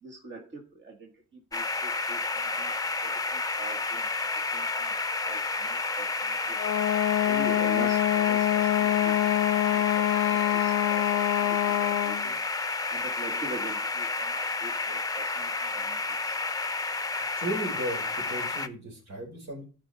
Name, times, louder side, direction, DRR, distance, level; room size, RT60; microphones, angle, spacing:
voice 1, 0.0-2.7 3.0-6.7 7.3-12.4 12.9-16.4, right 2 dB, 40° right, 0 dB, 1.7 m, -44 dB
sound 1, 1.5-18.7, left 3 dB, 10° left, 0.7 m, -31 dB
Wind instrument woodwind instrument, 6.6-12.3, left 15 dB, 65° left, 0.4 m, -25 dB
voice 2, 17.3-19.6, right 1 dB, 65° right, 1 dB, 4.6 m, -35 dB
13.0 x 5.1 x 4.0 m, 0.35 s
cardioid pair, 90°, 30 cm